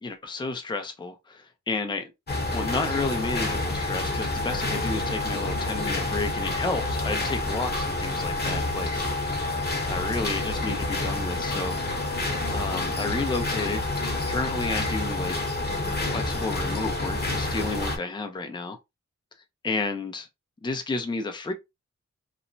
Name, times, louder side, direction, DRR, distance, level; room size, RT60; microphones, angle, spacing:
voice 1, 0.0-2.1 2.5-12.2 12.5-13.9 14.3-15.4 16.1-18.8 19.6-20.3 20.6-21.5, left 3 dB, 15° left, 0.5 m, -31 dB
sound 1, 2.3-18.0, left 2 dB, 35° left, 0.9 m, -28 dB
3.0 x 2.1 x 2.6 m
wide cardioid pair, 105°, 29 cm